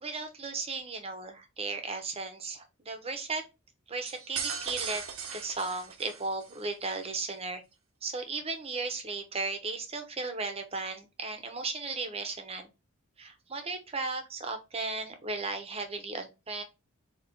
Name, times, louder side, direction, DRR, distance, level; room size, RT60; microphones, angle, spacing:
voice 1, 0.0-3.4 3.9-7.6 8.0-12.7 13.2-16.6, right 3 dB, 30° right, 0.8 m, -36 dB
sound 1, 4.1-6.6, right 6 dB, 85° right, 0.8 m, -38 dB
4.1 x 2.8 x 4.4 m
head